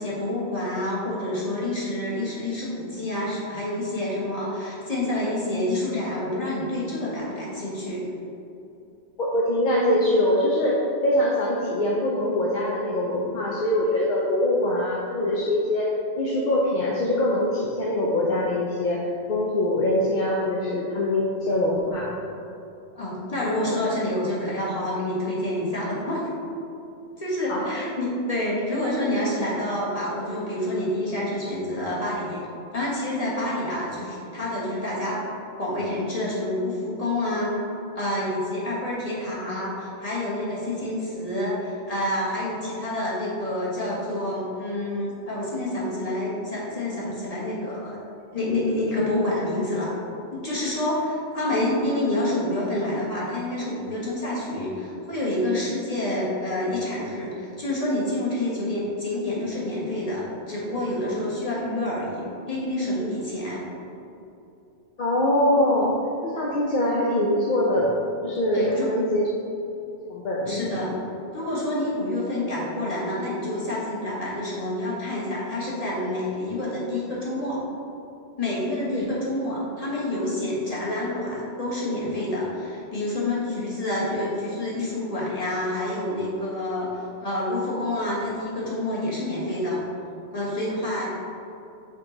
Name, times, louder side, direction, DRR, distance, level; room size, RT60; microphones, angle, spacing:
voice 1, 0.0-8.0 22.9-26.3 27.2-32.4 32.7-35.2 35.6-37.5 37.9-48.0 48.3-50.0 50.3-63.6 68.5-68.9 70.5-70.9 71.3-77.6 78.4-89.8 90.3-91.1, left 1 dB, 30° left, -7 dB, 1.6 m, -28 dB
voice 2, 9.2-15.9 16.2-22.1 27.5-27.6 65.0-65.9 66.2-67.9 68.2-69.3 70.1-70.7 78.9-79.1, left 1 dB, 50° left, -4 dB, 0.7 m, -23 dB
5.7 x 4.6 x 3.9 m, 2.8 s
omnidirectional pair, 1.2 m